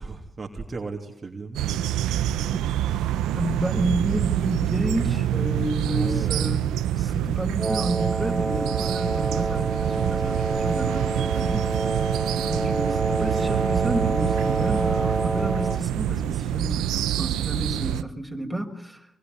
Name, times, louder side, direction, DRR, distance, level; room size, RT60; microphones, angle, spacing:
voice 1, 0.0-2.6 5.8-6.5 6.8-7.1, right 3 dB, 35° right, 3.2 m, -37 dB
sound 1, 1.5-18.0, right 11 dB, 75° right, 1.2 m, -26 dB
voice 2, 3.3-6.7 7.0-11.7 12.3-19.1, right 1 dB, 5° right, 6.4 m, -30 dB
Wind instrument woodwind instrument, 7.5-15.9, right 2 dB, 20° right, 1.4 m, -28 dB
25.5 x 22.0 x 9.7 m
hypercardioid pair, 50°, 0 cm